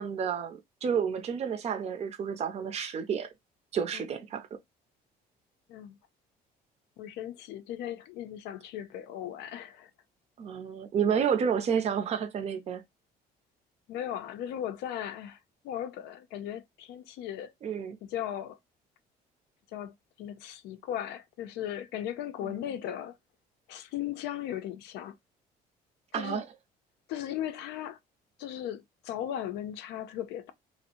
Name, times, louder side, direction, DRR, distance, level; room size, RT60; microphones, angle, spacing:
voice 1, 0.0-3.3 3.7-4.5 10.4-12.8 17.6-18.0 22.4-22.6 26.1-26.5, right 7 dB, 40° right, 0.5 m, -30 dB
voice 2, 7.0-9.9 13.9-15.4 15.6-17.5 18.0-18.6 19.7-23.1 23.7-25.2 26.1-26.4 27.1-28.0 28.4-30.5, left 11 dB, 85° left, 0.5 m, -37 dB
2.6 x 2.0 x 2.8 m
cardioid pair, 110°, 17 cm